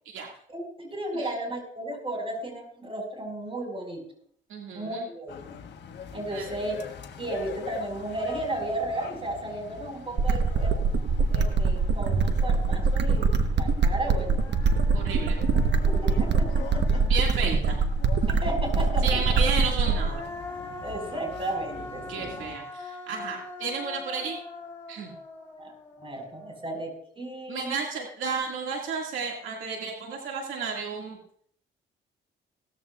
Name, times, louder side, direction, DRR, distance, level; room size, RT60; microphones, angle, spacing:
voice 1, 0.5-4.0 4.7-5.6 6.1-6.8 7.2-10.9 11.3-14.5 15.8-17.0 17.5-17.6 18.3-19.4 20.8-22.4 25.6-27.7, right 1 dB, 25° right, 2 dB, 5.5 m, -34 dB
voice 2, 4.5-5.1 6.3-6.5 14.9-15.4 17.1-17.8 19.0-20.3 22.1-24.4 24.9-25.1 27.5-31.2, right 5 dB, 80° right, 0 dB, 2.3 m, -32 dB
sound 1, 5.3-22.6, left 7 dB, 60° left, 1.4 m, -43 dB
sound 2, 10.2-20.2, right 4 dB, 60° right, 1.2 m, -23 dB
Human voice, 13.7-13.8 14.1-17.8 19.5-26.7, left 2 dB, 15° left, 4.3 m, -42 dB
17.5 x 14.0 x 2.5 m, 0.62 s
cardioid pair, 90°, 20 cm